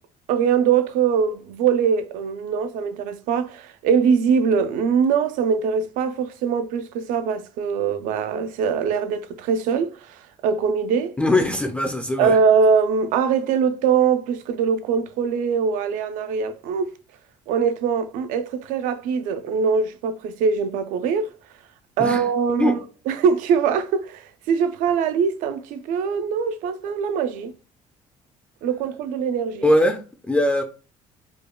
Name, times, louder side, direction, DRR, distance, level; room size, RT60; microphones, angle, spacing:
voice 1, 0.3-9.9 10.4-11.2 12.2-16.9 17.5-21.3 22.0-27.5 28.6-29.7, right 6 dB, 80° right, 0.5 m, -22 dB
voice 2, 11.2-12.4 22.0-22.2 22.6-22.8 29.6-30.6, left 1 dB, 10° left, 0.4 m, -21 dB
5.1 x 2.2 x 2.2 m
cardioid pair, 105°, 14 cm